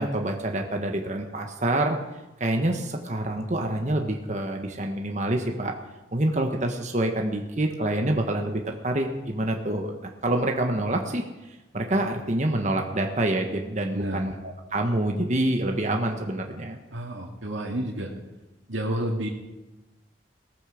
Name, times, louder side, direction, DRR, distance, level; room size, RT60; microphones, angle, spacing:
voice 1, 0.0-2.0 2.4-5.7 6.1-14.3 14.7-16.8, right 1 dB, 40° right, 3 dB, 1.4 m, -27 dB
voice 2, 16.9-18.1 18.7-19.3, right 1 dB, 80° right, -1 dB, 2.4 m, -30 dB
18.5 x 14.5 x 5.1 m, 1.1 s
head